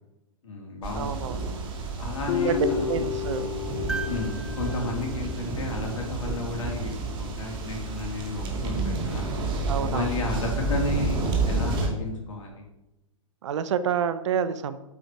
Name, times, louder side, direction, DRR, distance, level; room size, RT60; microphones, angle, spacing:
voice 1, 0.4-1.2 2.0-3.1 4.0-9.3 9.9-12.6, left 2 dB, 70° left, 0 dB, 3.5 m, -33 dB
sound 1, 0.8-11.9, right 3 dB, 30° right, 2.2 m, -30 dB
voice 2, 1.0-1.6 2.4-3.5 9.7-10.1 13.4-14.8, right 8 dB, 60° right, 13 dB, 0.9 m, -28 dB
Guitar, 2.3-5.6, left 8 dB, 45° left, 1.1 m, -31 dB
sound 2, 3.9-6.2 8.2-8.3, right 4 dB, 5° right, 0.4 m, -39 dB
8.6 x 7.9 x 4.9 m, 0.95 s
hypercardioid pair, 120°, 17 cm